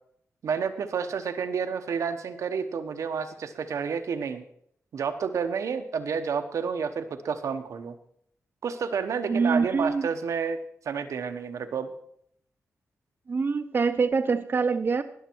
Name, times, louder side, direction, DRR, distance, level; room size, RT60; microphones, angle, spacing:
voice 1, 0.4-4.4 4.9-7.9 8.6-10.6 10.8-11.9, right 6 dB, 80° right, 1.0 m, -30 dB
voice 2, 9.3-10.1 13.3-15.0, right 4 dB, 45° right, 0.7 m, -25 dB
19.0 x 6.7 x 4.5 m
cardioid pair, 85°, 5 cm